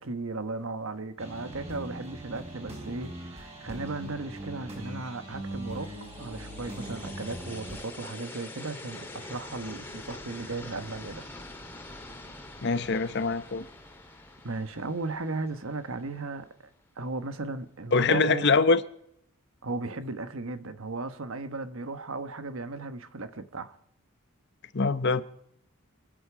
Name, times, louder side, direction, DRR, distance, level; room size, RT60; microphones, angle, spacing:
voice 1, 0.0-11.2 14.4-16.7 17.0-18.5 19.6-23.7, right 3 dB, 70° right, 1.2 m, -36 dB
sound 1, 1.2-7.8, right 1 dB, 30° right, 4.5 m, -40 dB
sound 2, 5.5-16.5, left 2 dB, 10° left, 2.1 m, -45 dB
voice 2, 12.6-13.6 17.9-18.8 24.7-25.2, left 4 dB, 55° left, 0.8 m, -23 dB
27.5 x 10.5 x 4.9 m
head